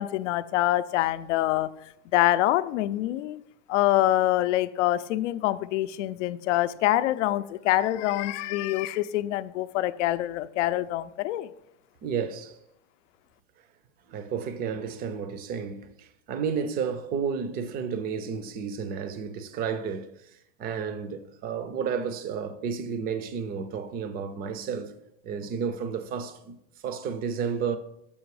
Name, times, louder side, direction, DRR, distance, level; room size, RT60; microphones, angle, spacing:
voice 1, 0.0-1.7 2.1-3.4 3.7-11.5, left 15 dB, 70° left, 0.5 m, -25 dB
voice 2, 12.0-12.6 14.1-20.3 20.6-25.0 25.2-27.8, right 6 dB, 25° right, 0.5 m, -32 dB
7.0 x 5.1 x 4.8 m
supercardioid pair, 140°, 39 cm